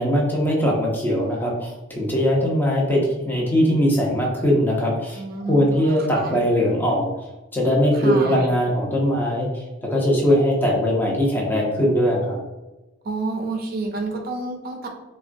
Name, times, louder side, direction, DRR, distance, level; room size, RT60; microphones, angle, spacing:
voice 1, 0.0-7.2 7.5-12.4, equal, 10° left, -3 dB, 0.6 m, -21 dB
voice 2, 5.2-6.4 7.9-8.5 13.0-14.9, right 3 dB, 45° right, 2 dB, 0.5 m, -29 dB
3.5 x 2.2 x 2.5 m, 1.1 s
head